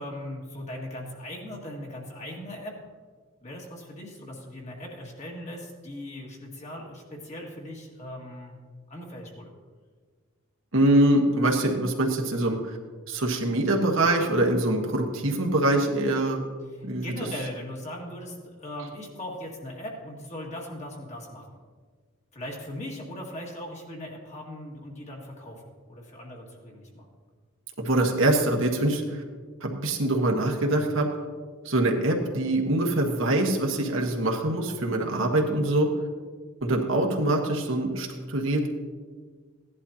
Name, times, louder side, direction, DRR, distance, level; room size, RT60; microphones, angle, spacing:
voice 1, 0.0-2.8 3.4-8.6 8.9-9.5 16.8-21.5 22.3-27.1, left 1 dB, 30° left, -1 dB, 1.9 m, -39 dB
voice 2, 10.7-12.8 13.1-16.4 16.8-17.1 27.8-29.2 29.6-31.1 31.6-35.9 36.6-38.7, right 1 dB, 60° right, 2 dB, 1.4 m, -24 dB
16.5 x 11.0 x 2.8 m, 1.5 s
head